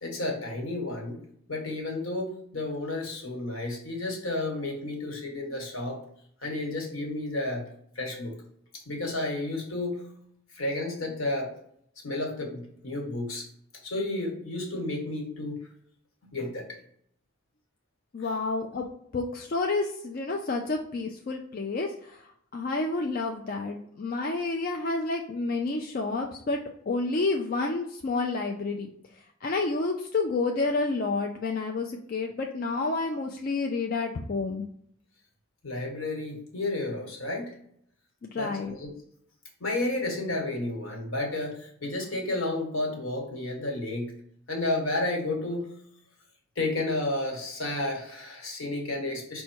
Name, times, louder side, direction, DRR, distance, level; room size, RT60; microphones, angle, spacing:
voice 1, 0.0-1.2 1.5-6.0 6.4-7.7 7.9-8.4 8.8-10.0 10.5-11.5 12.0-13.5 13.8-15.6 16.3-16.8 35.6-37.5 38.4-38.9 39.6-44.1 44.5-45.7 46.6-49.4, left 2 dB, 75° left, 1 dB, 1.3 m, -31 dB
voice 2, 18.1-26.6 26.9-34.7 38.2-38.8, left 3 dB, 45° left, 2 dB, 0.4 m, -30 dB
5.4 x 2.2 x 4.4 m, 0.68 s
head